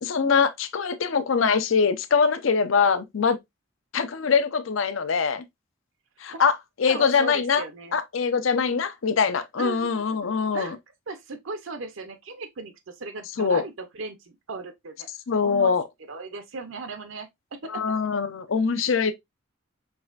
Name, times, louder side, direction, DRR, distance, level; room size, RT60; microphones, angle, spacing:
voice 1, 0.0-3.4 3.9-5.4 6.2-7.6 7.9-10.8 13.4-13.6 15.3-15.8 17.7-19.1, left 5 dB, 75° left, 0.6 m, -23 dB
voice 2, 6.8-8.0 9.6-10.8 11.1-15.1 15.4-15.7 16.1-18.0, right 3 dB, 75° right, 0.7 m, -37 dB
4.7 x 3.2 x 2.4 m
head